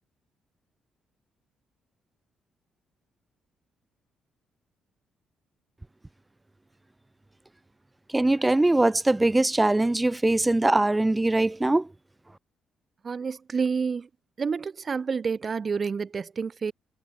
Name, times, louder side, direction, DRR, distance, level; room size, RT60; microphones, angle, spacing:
voice 1, 8.1-11.9, right 2 dB, 15° right, 1.1 m, -22 dB
voice 2, 13.0-14.1 14.4-16.7, right 5 dB, 40° right, 1.1 m, -29 dB
cardioid pair, 90°, 0 cm